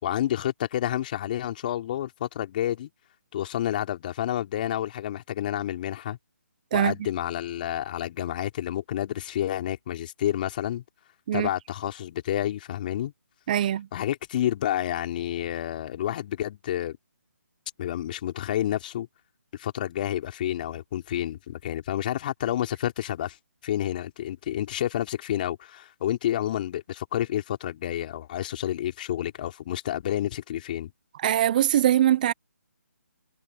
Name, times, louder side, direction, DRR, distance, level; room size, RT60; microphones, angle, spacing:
voice 1, 0.0-2.9 3.3-6.2 6.7-10.8 11.3-13.1 13.9-17.0 17.8-19.1 19.5-23.4 23.6-30.9, left 12 dB, 35° left, 3.5 m, -29 dB
voice 2, 13.5-13.9 31.2-32.3, right 11 dB, 30° right, 0.6 m, -22 dB
hypercardioid pair, 160°, 9 cm